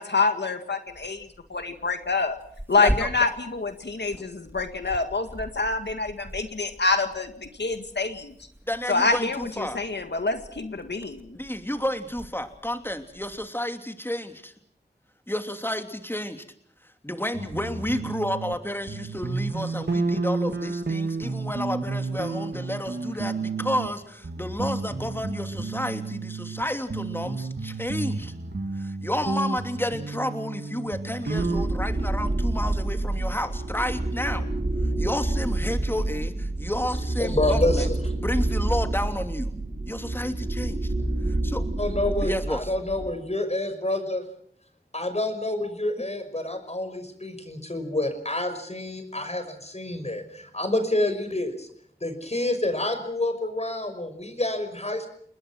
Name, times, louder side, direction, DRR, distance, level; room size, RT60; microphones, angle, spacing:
voice 1, 0.0-2.4 2.7-8.3 8.9-11.4, left 3 dB, 85° left, 7 dB, 2.0 m, -26 dB
Tearing, 0.9-13.5, equal, 10° right, 2.6 m, -40 dB
voice 2, 2.8-3.1 4.1-4.2 8.7-9.8 11.3-14.5 15.3-16.4 17.0-28.3 28.7-34.4 35.0-37.9 38.2-39.5 39.9-40.9 41.3-41.6 42.2-42.7, left 1 dB, 15° left, 6 dB, 3.0 m, -31 dB
sound 1, 17.3-18.5 18.9-23.9 24.2-26.6 26.9-31.6, right 3 dB, 75° right, 2.4 m, -31 dB
sound 2, 31.4-43.1, right 2 dB, 50° right, 4.1 m, -28 dB
voice 3, 37.2-38.1 41.8-44.2 44.9-51.7 52.0-55.1, left 1 dB, 40° left, 7 dB, 5.9 m, -28 dB
29.5 x 20.5 x 6.3 m, 0.66 s
wide cardioid pair, 45°, 17 cm